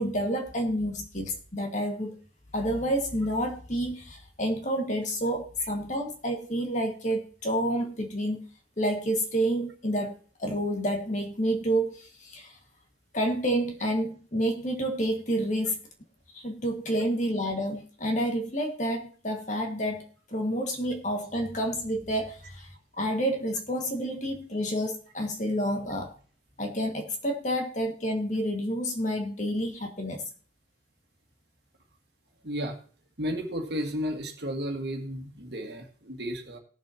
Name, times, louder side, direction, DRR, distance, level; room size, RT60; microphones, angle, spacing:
voice 1, 0.0-2.2 2.5-8.4 8.8-10.1 10.4-12.6 13.1-15.8 16.3-20.0 20.3-22.7 23.0-26.1 26.6-30.2, equal, 40° left, 3 dB, 1.9 m, -29 dB
voice 2, 32.4-32.8 33.2-36.6, equal, 60° right, 3 dB, 1.8 m, -33 dB
19.0 x 7.2 x 2.9 m, 0.40 s
head